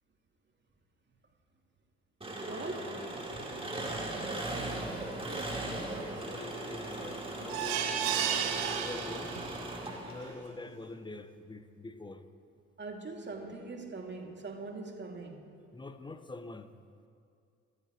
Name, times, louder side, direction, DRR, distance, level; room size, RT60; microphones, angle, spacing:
Engine, 2.2-10.3, right 1 dB, 15° right, 3.9 m, -38 dB
voice 1, 2.5-2.9 12.8-15.5, right 3 dB, 30° right, 2.7 m, -42 dB
voice 2, 5.2-8.3 8.7-9.3 10.0-12.2 15.7-16.7, left 2 dB, 15° left, 1.3 m, -46 dB
sound 1, 7.5-9.7 10.2-10.3 10.7-10.8, right 8 dB, 75° right, 1.4 m, -33 dB
29.0 x 14.5 x 3.2 m
figure-of-eight pair, 45°, 35 cm